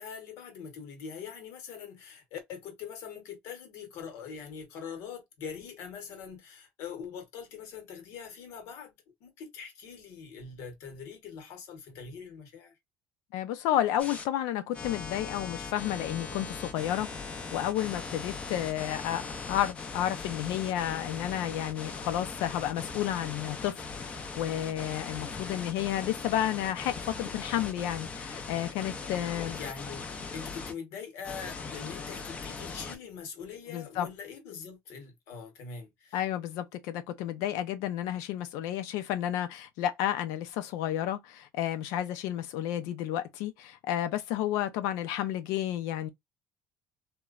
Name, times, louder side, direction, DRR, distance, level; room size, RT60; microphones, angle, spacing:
voice 1, 0.0-9.0 9.2-12.7 29.4-36.2, left 6 dB, 70° left, 1.0 m, -43 dB
voice 2, 13.3-29.6 33.7-34.1 36.1-46.1, left 12 dB, 85° left, 0.5 m, -31 dB
sound 1, 14.0-14.2 14.7-30.7 31.2-33.0, left 4 dB, 25° left, 0.5 m, -40 dB
2.9 x 2.2 x 2.3 m
cardioid pair, 145°, 5 cm